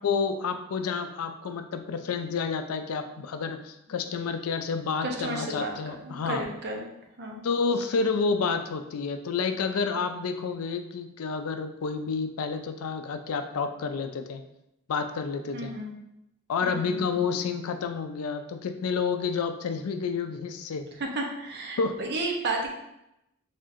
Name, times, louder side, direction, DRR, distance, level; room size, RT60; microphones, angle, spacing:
voice 1, 0.0-6.5 7.4-14.4 14.9-15.7 16.5-20.9 21.8-22.0, left 5 dB, 75° left, 7 dB, 0.4 m, -29 dB
voice 2, 5.0-6.9 7.2-7.4 15.5-15.9 16.6-17.1 21.0-22.7, right 2 dB, 50° right, 1 dB, 0.7 m, -33 dB
4.2 x 3.5 x 2.5 m, 0.85 s
head